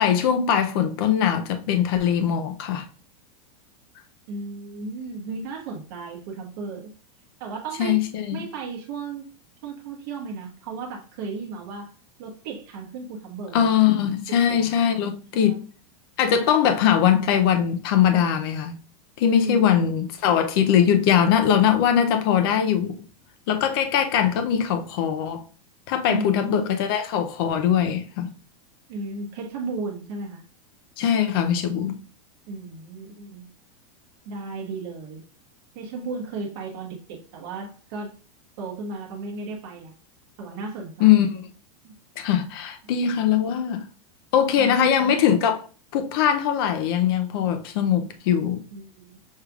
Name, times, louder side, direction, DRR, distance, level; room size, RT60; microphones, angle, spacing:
voice 1, 0.0-2.9 7.8-8.4 13.5-15.6 16.2-18.8 19.2-22.9 23.5-25.4 25.9-28.3 31.0-32.0 41.0-41.5 42.2-43.9 44.3-45.6 45.9-48.6, left 9 dB, 40° left, 0.5 m, -21 dB
voice 2, 4.3-6.9 7.4-8.0 8.3-9.3 9.6-11.9 12.2-13.7 14.5-15.0 15.3-15.6 19.3-19.8 26.1-26.7 28.9-30.4 32.5-33.5 34.2-35.2 35.7-38.1 38.6-39.9 40.4-41.3 41.8-41.9 44.6-45.1 48.7-49.2, right 3 dB, 40° right, 1.2 m, -35 dB
6.4 x 3.3 x 2.3 m
supercardioid pair, 180°, 19 cm